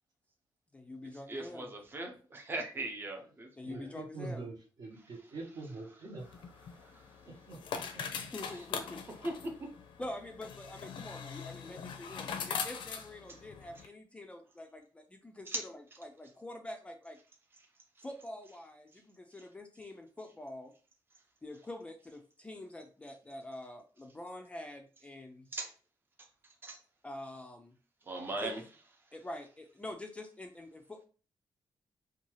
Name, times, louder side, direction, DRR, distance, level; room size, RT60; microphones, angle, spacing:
voice 1, 0.7-1.7 3.6-4.5 8.3-9.0 10.0-17.2 18.0-20.7 21.4-25.5 27.0-27.7 28.4-28.5 29.1-31.0, left 1 dB, 15° left, 0.3 m, -46 dB
voice 2, 1.3-3.5 9.2-9.3 15.5-15.6 25.5-25.7 26.6-26.8 28.1-28.6, right 2 dB, 25° right, 0.6 m, -38 dB
voice 3, 3.6-6.3 7.5-8.3, right 3 dB, 55° right, 0.9 m, -44 dB
sound 1, 6.2-13.9, left 6 dB, 75° left, 0.5 m, -42 dB
2.7 x 2.3 x 3.0 m
cardioid pair, 130°, 8 cm